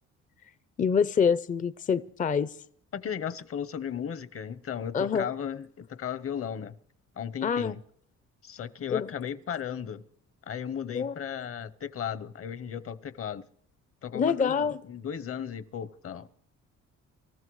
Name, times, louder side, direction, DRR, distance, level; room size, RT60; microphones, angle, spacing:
voice 1, 0.8-2.6 4.9-5.3 7.4-7.8 8.9-9.1 10.9-11.1 14.1-14.8, left 6 dB, 25° left, 0.5 m, -26 dB
voice 2, 2.9-6.8 7.2-7.8 8.4-10.0 10.5-13.4 14.0-16.3, left 8 dB, 50° left, 0.9 m, -35 dB
26.0 x 14.0 x 3.2 m
cardioid pair, 90°, 30 cm